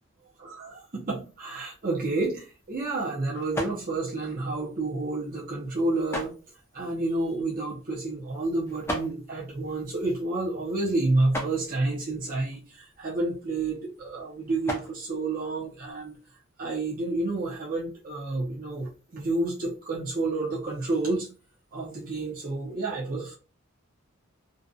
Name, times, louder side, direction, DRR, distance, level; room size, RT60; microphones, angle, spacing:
voice 1, 0.4-6.4 6.7-16.1 16.6-21.3 21.7-23.4, right 2 dB, 40° right, -4 dB, 0.5 m, -29 dB
sound 1, 1.9-16.3, equal, 10° left, 0.4 m, -41 dB
2.5 x 2.1 x 2.5 m, 0.33 s
head